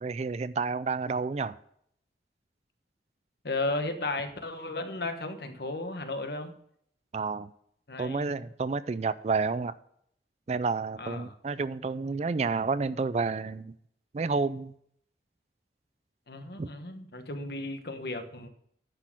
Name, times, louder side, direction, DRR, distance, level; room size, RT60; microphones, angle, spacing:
voice 1, 0.0-1.6 7.1-7.5 8.0-9.7 10.5-13.7 14.1-14.7 16.6-16.7, right 4 dB, 40° right, 0.3 m, -30 dB
voice 2, 3.4-6.5 7.9-8.4 11.0-11.3 16.3-18.5, left 2 dB, 60° left, 1.2 m, -34 dB
9.9 x 6.3 x 6.1 m
head